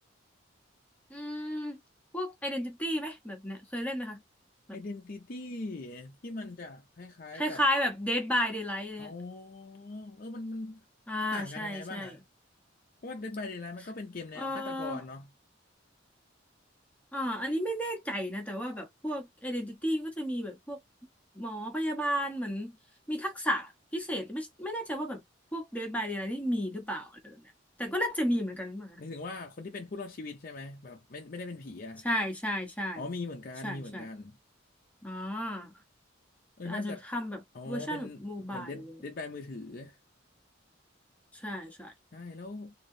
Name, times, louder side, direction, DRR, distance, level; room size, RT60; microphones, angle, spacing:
voice 1, 1.1-1.8 2.1-4.2 4.7-4.8 7.3-9.1 11.1-12.1 14.4-15.0 17.1-20.8 21.3-22.7 23.1-25.2 25.5-27.4 27.8-29.0 32.0-33.0 33.6-34.1 35.0-35.7 36.6-38.8 41.3-41.9, equal, 5° left, 1.2 m, -33 dB
voice 2, 4.7-7.6 9.0-10.8 11.3-12.2 13.0-15.3 29.0-32.1 33.0-34.4 36.6-37.1 37.5-40.0 42.1-42.7, left 3 dB, 45° left, 0.6 m, -41 dB
3.3 x 2.7 x 3.9 m
head